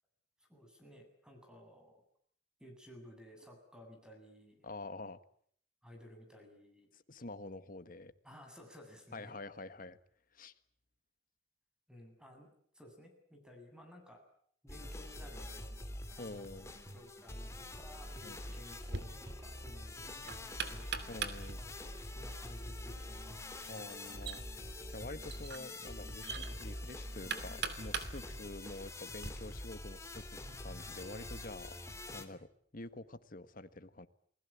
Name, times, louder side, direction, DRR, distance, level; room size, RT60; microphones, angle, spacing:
voice 1, 0.5-2.0 2.6-4.7 5.8-6.9 8.2-9.3 11.9-12.5 12.7-14.2 14.6-24.0 28.2-28.4, left 1 dB, 5° right, 3 dB, 7.9 m, -56 dB
voice 2, 4.6-5.2 6.9-8.1 9.1-10.0 10.3-10.5 16.2-16.7 18.2-18.6 21.1-21.6 23.7-24.4 24.9-31.8 32.1-32.5 32.7-34.1, left 2 dB, 50° left, 11 dB, 1.6 m, -47 dB
sound 1, 14.7-32.3, left 1 dB, 15° left, 2.7 m, -45 dB
Knock, 18.7-29.3, right 6 dB, 65° right, 2.8 m, -44 dB
28.5 x 20.5 x 8.6 m, 0.63 s
head